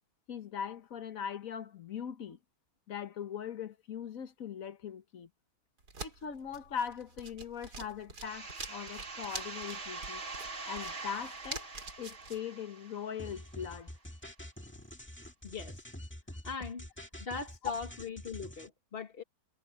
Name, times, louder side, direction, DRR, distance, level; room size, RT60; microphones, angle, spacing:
voice 1, 0.3-2.4 2.9-5.3 6.0-10.2 10.7-11.7 12.0-13.9, left 8 dB, 60° left, 1.5 m, -40 dB
sound 1, 5.8-12.4, right 3 dB, 80° right, 4.0 m, -46 dB
sound 2, 8.2-13.7, right 3 dB, 50° right, 2.2 m, -44 dB
sound 3, 13.2-18.7, left 1 dB, 5° left, 1.8 m, -46 dB
voice 2, 15.4-15.9 16.4-16.9 17.2-19.2, left 4 dB, 40° left, 1.8 m, -40 dB
omnidirectional pair, 1.7 m